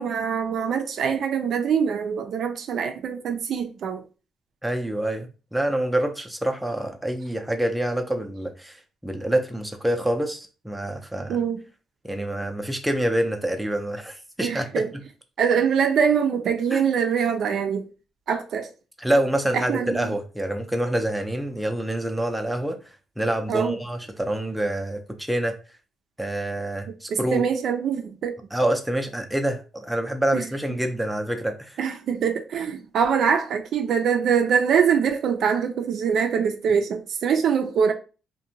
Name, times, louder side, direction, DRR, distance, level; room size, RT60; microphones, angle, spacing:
voice 1, 0.0-4.0 11.3-11.6 14.4-14.9 15.4-17.9 18.3-18.7 19.5-20.1 23.5-23.8 27.1-28.4 30.3-30.5 31.8-37.9, right 7 dB, 65° right, 0.4 m, -23 dB
voice 2, 4.6-8.8 9.0-11.4 12.0-15.0 16.7-16.8 19.0-22.8 23.2-25.6 26.2-27.5 28.5-31.8, right 1 dB, 5° right, 0.5 m, -26 dB
2.6 x 2.2 x 2.7 m
cardioid pair, 90°, 0 cm